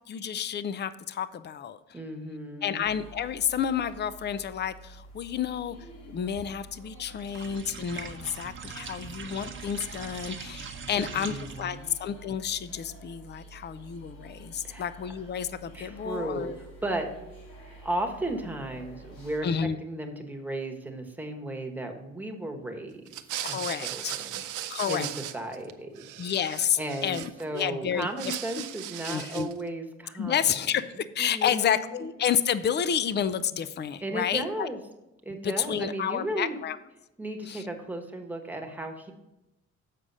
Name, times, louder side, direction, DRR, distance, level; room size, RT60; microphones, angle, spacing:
voice 1, 0.1-2.0 2.6-5.8 6.0-16.6 19.4-19.8 23.4-24.1 24.7-25.1 26.2-28.3 29.0-29.5 30.2-34.7 35.4-36.8 37.5-37.6, left 8 dB, 35° left, 14 dB, 0.5 m, -30 dB
voice 2, 1.9-2.9 10.9-11.9 14.6-14.9 15.7-16.5 16.8-17.1 17.8-19.5 19.8-23.0 23.4-25.1 25.3-26.1 26.8-30.5 31.2-32.1 34.0-34.8 35.2-36.6 37.2-39.1, right 1 dB, 5° right, 3 dB, 1.2 m, -35 dB
sound 1, 2.8-19.4, right 2 dB, 85° left, 2.3 m, -48 dB
sound 2, 7.2-11.8, right 6 dB, 40° right, 0.9 m, -42 dB
sound 3, 23.1-25.7 26.0-27.6 28.0-29.6, right 12 dB, 80° right, 0.6 m, -37 dB
7.5 x 4.9 x 5.4 m, 0.96 s
cardioid pair, 90°, 30 cm